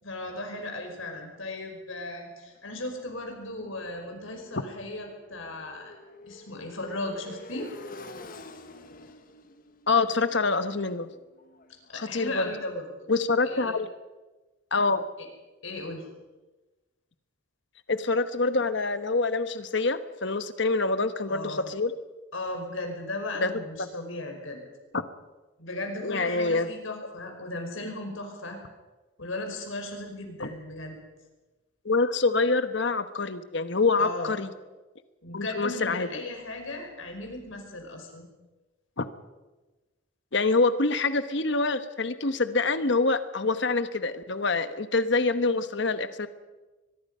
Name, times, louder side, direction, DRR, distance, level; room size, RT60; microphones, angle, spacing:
voice 1, 0.0-5.9 6.3-7.7 11.9-12.9 13.4-13.7 15.6-16.1 21.3-21.7 22.3-24.6 25.6-28.6 29.2-31.0 34.0-34.3 35.2-38.3, left 2 dB, 75° left, 3 dB, 5.4 m, -36 dB
Motorcycle, 2.5-12.4, left 2 dB, 45° left, 1.4 m, -48 dB
voice 2, 9.9-11.1 11.9-12.5 13.1-13.9 14.7-15.0 17.9-21.9 23.4-23.5 23.8-23.9 24.9-25.0 26.0-26.7 31.8-34.5 35.3-36.1 39.0-39.1 40.3-46.3, left 3 dB, 60° left, 11 dB, 1.2 m, -26 dB
23.0 x 21.5 x 5.6 m, 1.2 s
head